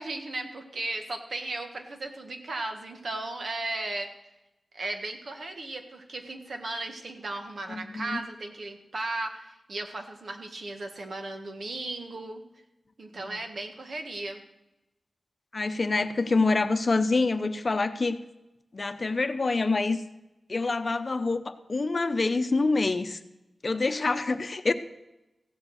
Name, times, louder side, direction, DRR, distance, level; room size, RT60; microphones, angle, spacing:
voice 1, 0.0-4.1 4.7-12.4 13.0-14.4, right 2 dB, 70° right, 4 dB, 1.6 m, -36 dB
voice 2, 7.7-8.2 13.2-13.4 15.5-18.2 18.7-20.0 20.5-23.2 23.6-24.7, left 3 dB, 45° left, 9 dB, 0.8 m, -26 dB
15.5 x 7.9 x 6.5 m, 0.95 s
wide cardioid pair, 100°, 0 cm